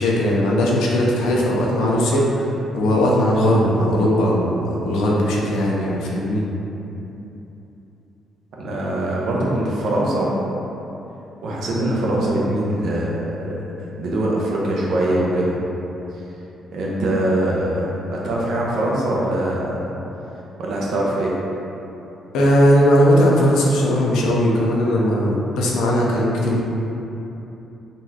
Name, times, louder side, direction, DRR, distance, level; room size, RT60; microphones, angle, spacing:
voice 1, 0.0-6.4 22.3-26.6, equal, 90° left, -3 dB, 0.5 m, -18 dB
voice 2, 8.6-10.3 11.4-13.6 13.9-15.6 16.7-19.8 20.6-21.4, right 1 dB, 70° right, -4 dB, 0.6 m, -22 dB
3.9 x 2.3 x 2.7 m, 3.0 s
cardioid pair, 90°, 0 cm